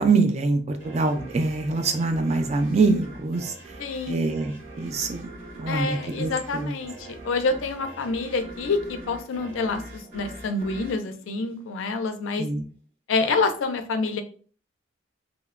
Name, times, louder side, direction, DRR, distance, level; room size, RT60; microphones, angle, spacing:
voice 1, 0.0-3.5 4.1-5.3 5.6-6.7 12.4-12.7, right 3 dB, 35° right, 6 dB, 0.3 m, -24 dB
sound 1, 0.8-12.1, right 2 dB, 65° right, 1.4 m, -43 dB
voice 2, 3.8-4.3 5.7-12.5 13.1-14.2, left 3 dB, 80° left, 8 dB, 0.4 m, -27 dB
2.9 x 2.1 x 2.4 m, 0.41 s
head